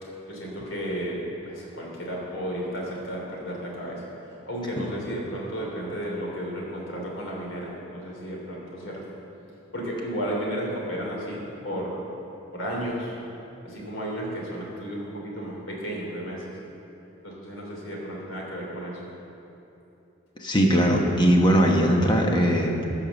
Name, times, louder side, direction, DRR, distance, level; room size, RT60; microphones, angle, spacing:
voice 1, 0.0-9.1 9.7-12.0 12.5-13.2 13.6-16.6 17.2-19.1, equal, 70° left, -3 dB, 3.0 m, -33 dB
voice 2, 20.4-22.9, equal, 20° left, 1 dB, 1.1 m, -20 dB
15.5 x 5.7 x 6.9 m, 2.9 s
head